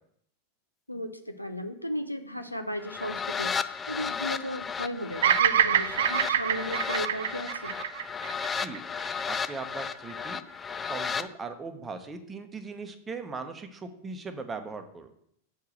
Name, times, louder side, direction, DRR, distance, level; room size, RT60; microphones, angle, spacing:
voice 1, 0.9-7.7, equal, 90° left, 7 dB, 0.7 m, -35 dB
sound 1, 2.8-11.3, left 6 dB, 15° left, 0.3 m, -34 dB
Bird vocalization bird call bird song, 5.2-9.5, right 9 dB, 60° right, 0.3 m, -26 dB
voice 2, 9.3-10.4 10.9-15.1, right 4 dB, 20° right, 8 dB, 0.9 m, -39 dB
6.5 x 4.7 x 6.4 m, 0.69 s
figure-of-eight pair, 90°, 0 cm